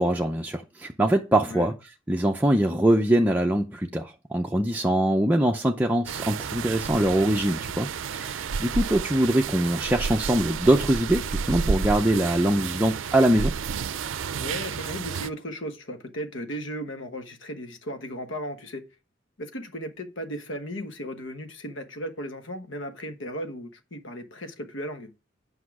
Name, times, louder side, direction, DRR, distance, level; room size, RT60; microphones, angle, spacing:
voice 1, 0.0-1.7 2.1-7.9 8.1-13.5, right 1 dB, 10° right, 0.6 m, -23 dB
sound 1, 6.1-15.3, right 6 dB, 80° right, 0.5 m, -31 dB
voice 2, 14.3-18.8 19.4-25.1, equal, 70° left, 1.2 m, -36 dB
8.3 x 5.5 x 4.8 m
head